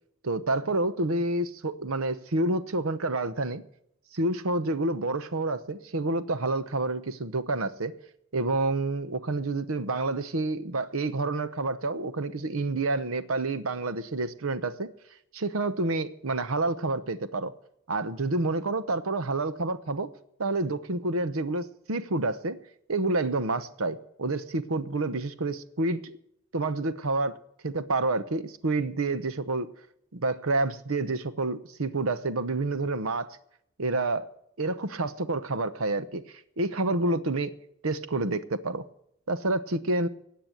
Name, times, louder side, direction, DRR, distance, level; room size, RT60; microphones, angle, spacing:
voice 1, 0.2-3.6 4.1-7.9 8.3-14.9 15.3-17.5 17.9-20.1 20.4-22.6 22.9-26.2 26.5-27.4 27.6-29.7 30.1-33.3 33.8-34.3 34.6-36.2 36.6-37.5 37.8-38.8 39.3-40.1, right 2 dB, 70° right, 14 dB, 0.9 m, -28 dB
16.5 x 8.8 x 7.9 m, 0.74 s
head